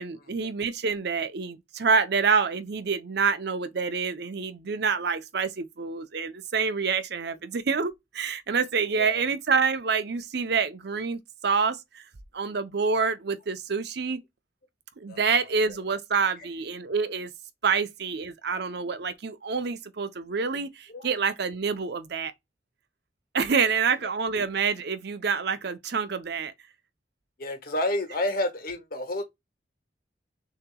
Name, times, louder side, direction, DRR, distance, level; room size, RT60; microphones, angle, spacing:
voice 1, 0.0-12.0 12.3-14.2 15.0-17.3 17.6-22.3 23.3-26.5, right 5 dB, 65° right, 0.7 m, -27 dB
voice 2, 8.9-9.3 15.1-15.2 20.9-21.1 23.6-23.7 24.3-24.4 27.4-29.2, left 1 dB, 55° left, 1.3 m, -30 dB
6.4 x 2.9 x 2.3 m
head